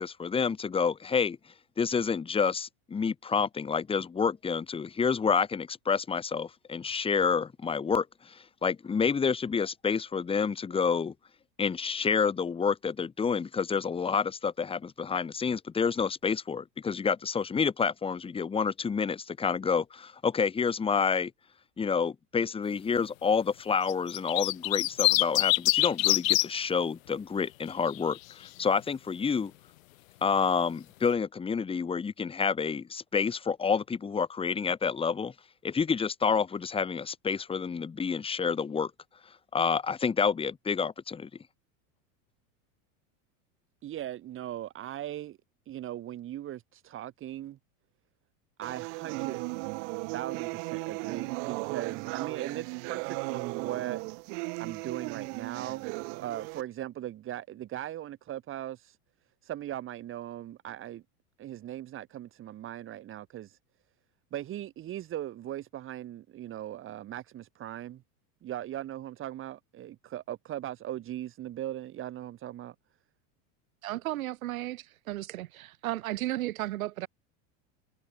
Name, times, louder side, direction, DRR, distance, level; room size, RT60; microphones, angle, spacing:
voice 1, 0.0-1.4 1.8-11.1 11.6-21.3 21.8-29.5 30.2-35.3 35.6-38.9 39.5-41.3, left 6 dB, 15° left, 2.5 m, -29 dB
sound 1, 23.9-26.5 27.7-28.2, left 18 dB, 75° left, 3.8 m, -24 dB
voice 2, 43.8-45.4 45.7-47.6 48.6-49.4 50.1-54.0 54.6-59.0 59.4-61.0 61.4-63.6 64.3-68.0 68.4-72.7, right 12 dB, 30° right, 4.9 m, -39 dB
sound 2, 48.6-56.6, right 40 dB or more, 55° right, 5.6 m, -36 dB
voice 3, 73.8-77.1, right 15 dB, 90° right, 4.0 m, -34 dB
supercardioid pair, 155°, 40 cm